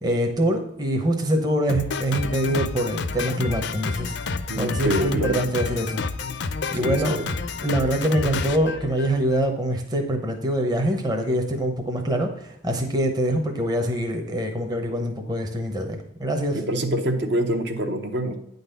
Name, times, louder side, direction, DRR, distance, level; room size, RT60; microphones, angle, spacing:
voice 1, 0.0-4.1 4.6-6.0 6.7-7.1 7.6-16.6, right 1 dB, 20° right, 3 dB, 0.8 m, -24 dB
Drum kit, 1.7-9.5, left 4 dB, 60° left, 0.5 m, -30 dB
voice 2, 4.5-5.4 6.8-7.3 16.5-18.4, right 1 dB, 55° right, 5 dB, 0.9 m, -26 dB
9.4 x 4.0 x 6.7 m, 0.79 s
head